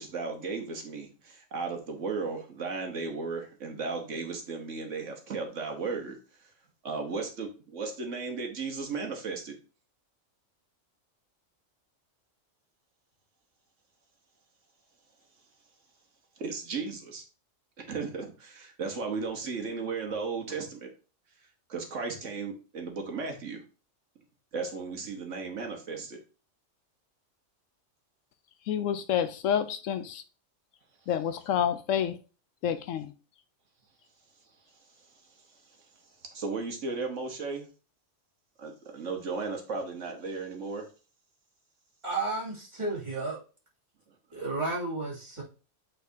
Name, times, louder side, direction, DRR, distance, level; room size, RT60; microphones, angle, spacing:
voice 1, 0.0-6.2 6.8-9.5 16.4-17.2 17.8-20.9 21.7-23.6 24.5-26.2 36.3-37.7 38.6-40.9, right 4 dB, 70° right, 1.5 m, -35 dB
voice 2, 28.7-30.2 31.1-32.2 32.6-33.1, left 9 dB, 75° left, 0.9 m, -28 dB
voice 3, 42.0-43.4 44.3-45.4, right 3 dB, 25° right, 2.4 m, -32 dB
8.3 x 4.2 x 2.7 m
omnidirectional pair, 1.3 m